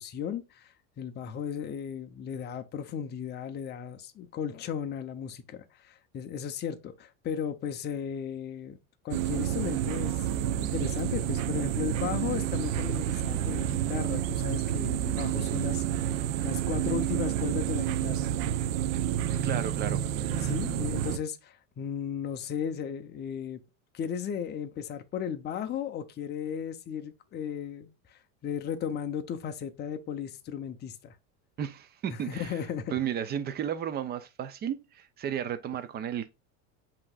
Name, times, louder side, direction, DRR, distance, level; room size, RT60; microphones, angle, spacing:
voice 1, 0.0-8.8 9.0-18.3 20.4-23.6 23.9-31.1 32.3-32.9, left 8 dB, 25° left, 0.6 m, -35 dB
sound 1, 9.1-21.2, right 11 dB, 65° right, 0.7 m, -29 dB
voice 2, 19.4-20.0 31.6-32.6 32.9-36.3, right 9 dB, 25° right, 0.5 m, -33 dB
7.5 x 3.0 x 2.3 m
supercardioid pair, 135°, 43 cm